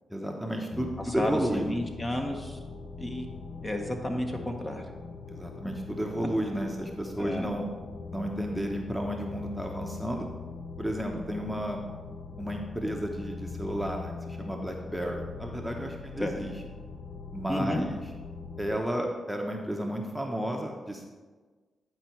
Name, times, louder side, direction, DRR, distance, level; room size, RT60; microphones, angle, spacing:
voice 1, 0.1-1.7 5.3-7.6 8.1-10.3 10.8-11.9 12.4-16.5 17.3-18.0 18.6-21.1, equal, 5° right, 1 dB, 1.0 m, -32 dB
sound 1, 0.7-18.8, left 4 dB, 65° left, 0.6 m, -42 dB
voice 2, 1.2-2.6 3.0-3.3 3.6-4.8 7.2-7.5 16.2-16.3 17.5-17.8, left 1 dB, 25° left, 3 dB, 1.3 m, -31 dB
9.8 x 4.5 x 4.6 m, 1.4 s
supercardioid pair, 50°, 0 cm